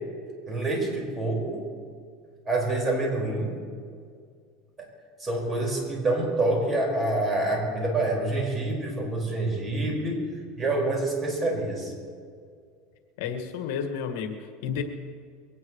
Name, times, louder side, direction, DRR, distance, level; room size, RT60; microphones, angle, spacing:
voice 1, 0.5-1.7 2.5-3.6 5.2-10.2 10.6-11.9, right 2 dB, 20° right, -2 dB, 5.2 m, -27 dB
voice 2, 13.2-14.3 14.6-14.8, left 7 dB, 75° left, 5 dB, 1.8 m, -31 dB
23.0 x 18.5 x 3.2 m, 2.1 s
supercardioid pair, 140°, 0 cm